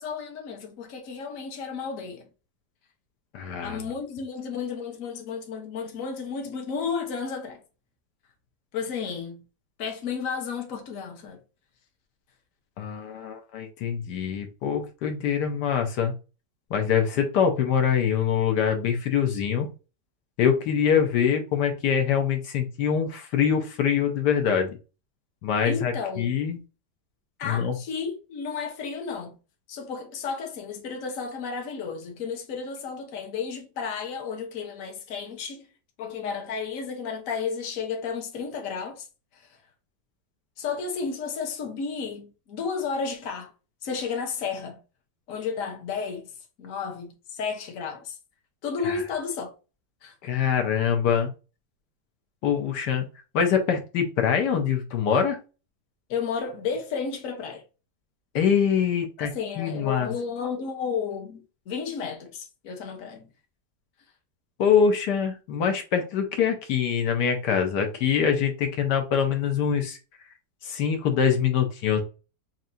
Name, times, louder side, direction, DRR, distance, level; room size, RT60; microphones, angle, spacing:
voice 1, 0.0-2.3 3.6-7.6 8.7-9.4 9.8-11.4 25.6-26.3 27.4-29.4 29.7-35.7 36.0-39.1 39.3-39.5 40.6-43.5 43.8-44.8 45.3-46.3 46.6-48.2 48.6-49.5 50.0-50.1 56.1-57.6 59.2-63.3, left 6 dB, 55° left, 1.3 m, -32 dB
voice 2, 3.3-3.8 12.8-16.1 16.7-19.7 20.4-24.8 25.4-26.6 27.4-27.7 48.8-49.0 50.2-51.3 52.4-53.1 53.3-55.4 58.3-59.3 59.6-60.1 64.6-70.0 70.6-72.0, left 7 dB, 85° left, 1.4 m, -24 dB
5.8 x 2.5 x 2.6 m
omnidirectional pair, 1.8 m